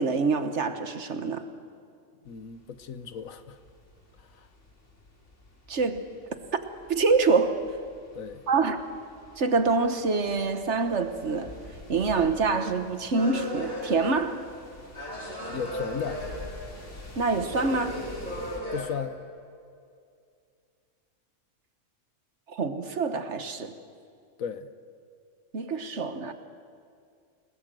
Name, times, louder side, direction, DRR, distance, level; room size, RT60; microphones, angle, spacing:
voice 1, 0.0-1.4 5.7-6.0 6.9-7.6 8.5-8.8 9.4-11.5 11.9-14.4 17.2-18.0 22.5-23.7 25.5-26.3, right 4 dB, 60° right, 1.6 m, -26 dB
voice 2, 2.2-3.6 4.3-4.5 8.1-8.4 15.4-16.2 18.7-19.2 24.4-24.7, left 7 dB, 85° left, 1.4 m, -35 dB
sound 1, 2.2-18.6, left 2 dB, 60° left, 3.3 m, -48 dB
sound 2, 13.1-14.6 14.9-17.0 17.3-18.9, equal, 35° left, 5.5 m, -36 dB
29.5 x 19.0 x 7.7 m
omnidirectional pair, 1.4 m